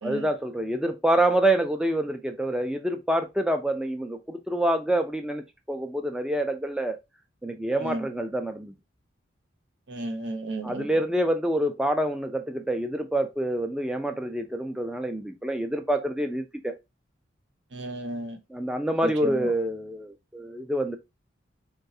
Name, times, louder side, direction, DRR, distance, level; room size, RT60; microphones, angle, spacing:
voice 1, 0.0-5.4 5.7-7.0 7.4-8.7 10.6-16.7 18.5-21.0, right 1 dB, 5° right, 0.3 m, -27 dB
voice 2, 9.9-10.8 17.7-18.4 19.2-19.3, right 2 dB, 70° right, 0.7 m, -33 dB
3.9 x 2.3 x 2.6 m
head